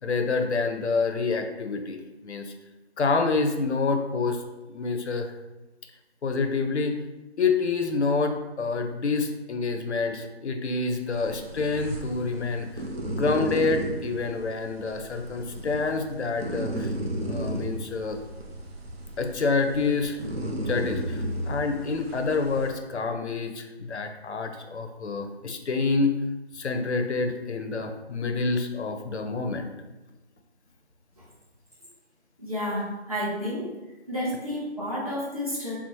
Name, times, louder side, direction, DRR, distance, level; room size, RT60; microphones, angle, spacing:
voice 1, 0.0-2.0 2.2-2.5 3.0-4.4 4.7-5.3 6.2-7.0 7.4-16.9 17.3-18.2 19.2-20.2 20.7-26.1 26.5-29.7, left 4 dB, 80° left, 6 dB, 0.5 m, -27 dB
sound 1, 11.1-22.7, right 1 dB, 60° right, 0.6 m, -34 dB
voice 2, 32.4-33.8 34.1-35.8, equal, 35° right, -7 dB, 0.9 m, -31 dB
4.3 x 2.0 x 2.9 m, 1.1 s
figure-of-eight pair, 175°, 34 cm